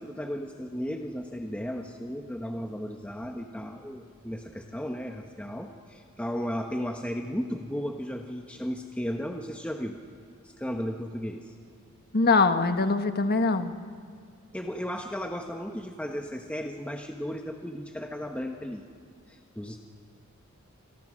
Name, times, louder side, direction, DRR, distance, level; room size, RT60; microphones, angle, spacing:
voice 1, 0.0-10.0 10.4-11.5 14.5-18.8 19.3-19.8, equal, 5° left, 3 dB, 1.1 m, -35 dB
voice 2, 12.1-13.7, left 3 dB, 50° left, 8 dB, 1.4 m, -23 dB
28.0 x 23.5 x 6.4 m, 2.1 s
head